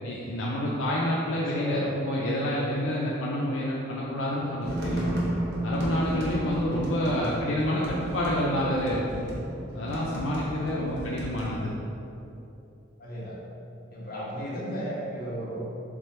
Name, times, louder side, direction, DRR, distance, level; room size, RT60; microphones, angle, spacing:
voice 1, 0.0-5.1 5.6-9.2 9.7-11.7, left 1 dB, 70° left, -5 dB, 0.5 m, -28 dB
voice 2, 1.5-1.9 6.9-7.4 10.6-10.9 13.0-13.4 13.9-15.6, equal, 45° left, -7 dB, 1.0 m, -35 dB
sound 1, 4.6-11.5, right 1 dB, 55° right, 0.8 m, -33 dB
3.6 x 3.2 x 4.2 m, 2.8 s
head